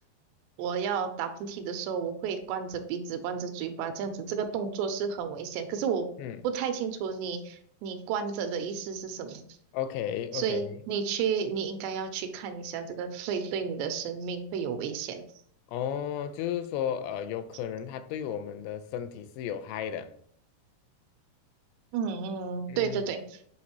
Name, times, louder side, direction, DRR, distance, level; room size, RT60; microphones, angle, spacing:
voice 1, 0.6-6.1 6.4-9.5 10.3-15.2 21.9-23.4, right 6 dB, 85° right, 2.8 m, -32 dB
voice 2, 9.7-10.8 15.7-20.1 22.7-23.0, left 9 dB, 85° left, 2.7 m, -34 dB
8.6 x 4.0 x 2.9 m
omnidirectional pair, 4.9 m